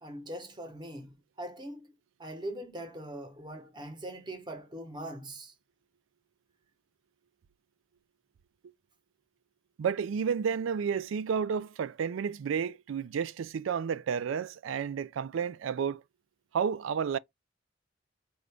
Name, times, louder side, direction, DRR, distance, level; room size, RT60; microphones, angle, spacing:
voice 1, 0.0-1.9 2.2-5.5, right 1 dB, 25° right, 1.0 m, -41 dB
voice 2, 9.8-16.0 16.5-17.2, right 7 dB, 75° right, 0.4 m, -31 dB
4.6 x 2.6 x 3.4 m
head